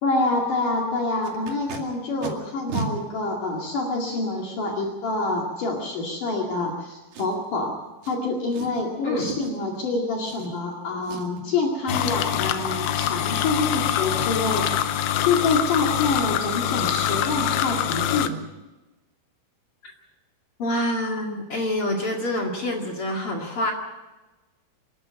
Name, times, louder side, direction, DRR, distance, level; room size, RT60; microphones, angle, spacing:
voice 1, 0.0-7.7 8.0-14.8 15.2-18.4, left 3 dB, 60° left, -1 dB, 3.6 m, -26 dB
Packing tape duct tape, 1.2-1.8 2.2-2.3 2.7-2.9 3.7-3.8 7.1-7.5 8.0-8.2 8.5-8.8 9.2-9.6 10.2-10.8 11.0-11.5 11.9-12.0 12.3-12.7 15.7-15.8 16.1-16.3 16.7-16.8 17.1-17.4 17.6-17.7, right 5 dB, 80° right, 4.2 m, -35 dB
voice 2, 9.0-9.3 19.8-19.9 20.6-23.7, left 1 dB, 40° left, 0 dB, 2.7 m, -27 dB
sound 1, 11.9-18.3, left 10 dB, 85° left, 2.7 m, -25 dB
26.5 x 11.5 x 8.8 m, 1.1 s
omnidirectional pair, 4.3 m